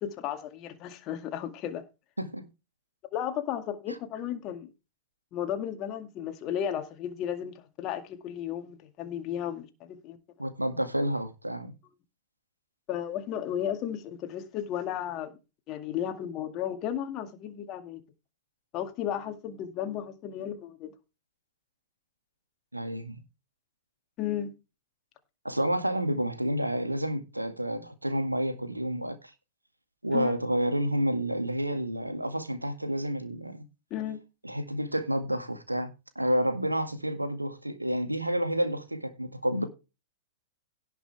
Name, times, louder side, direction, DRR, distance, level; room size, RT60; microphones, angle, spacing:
voice 1, 0.0-1.8 3.1-4.7 5.3-10.2 12.9-15.3 15.7-18.0 18.7-20.9 24.2-24.5 30.1-30.3 33.9-34.2, left 10 dB, 35° left, 2.1 m, -34 dB
voice 2, 10.4-11.7 22.7-23.2 25.4-29.3 30.0-33.7 34.4-35.9 36.2-39.7, right 1 dB, 85° right, 1.9 m, -29 dB
17.5 x 6.1 x 3.4 m
figure-of-eight pair, 100°, 0 cm